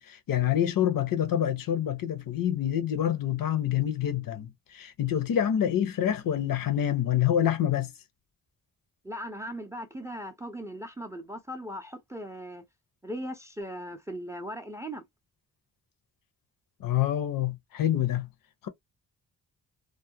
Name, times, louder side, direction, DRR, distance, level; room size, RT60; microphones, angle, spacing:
voice 1, 0.0-7.9 16.8-18.3 18.6-18.7, left 10 dB, 65° left, 0.6 m, -27 dB
voice 2, 9.0-12.7 13.0-15.0, equal, 10° right, 0.4 m, -38 dB
2.3 x 2.1 x 2.7 m
cardioid pair, 115°, 36 cm